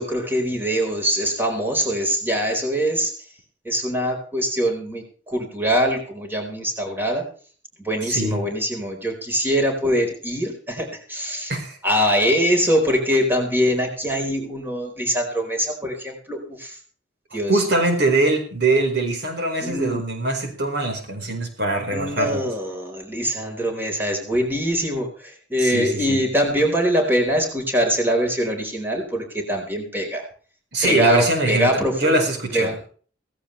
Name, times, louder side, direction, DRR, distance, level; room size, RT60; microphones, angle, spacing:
voice 1, 0.0-3.1 3.6-7.2 7.8-11.5 11.8-16.8 17.3-17.7 19.6-20.1 21.9-30.3 30.8-32.2 32.5-32.8, equal, 10° right, 2 dB, 4.5 m, -23 dB
voice 2, 8.1-8.4 11.5-11.8 17.5-22.5 25.6-26.2 30.7-32.9, right 2 dB, 65° right, 3 dB, 4.9 m, -22 dB
18.0 x 16.0 x 3.4 m, 0.42 s
head